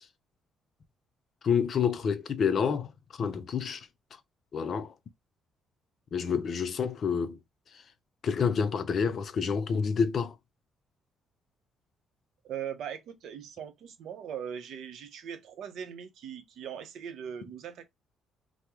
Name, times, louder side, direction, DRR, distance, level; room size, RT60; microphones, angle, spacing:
voice 1, 1.4-2.9 3.2-3.9 4.5-4.9 6.1-7.4 8.2-10.3, left 6 dB, 40° left, 0.4 m, -28 dB
voice 2, 12.4-17.8, right 8 dB, 60° right, 0.6 m, -40 dB
3.0 x 2.0 x 3.5 m
cardioid pair, 170°, 0 cm